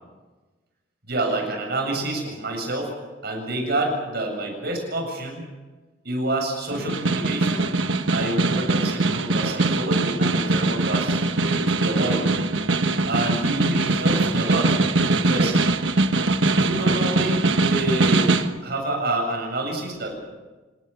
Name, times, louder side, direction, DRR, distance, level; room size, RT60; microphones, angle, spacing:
voice 1, 1.0-2.9 3.2-5.5 6.0-7.7 8.1-12.3 13.1-14.8 15.1-15.6 16.5-18.3 18.6-20.1, right 1 dB, 55° right, 2 dB, 7.7 m, -28 dB
Snare drum, 6.7-18.6, right 3 dB, 75° right, 1.3 m, -22 dB
27.5 x 18.5 x 7.0 m, 1.2 s
head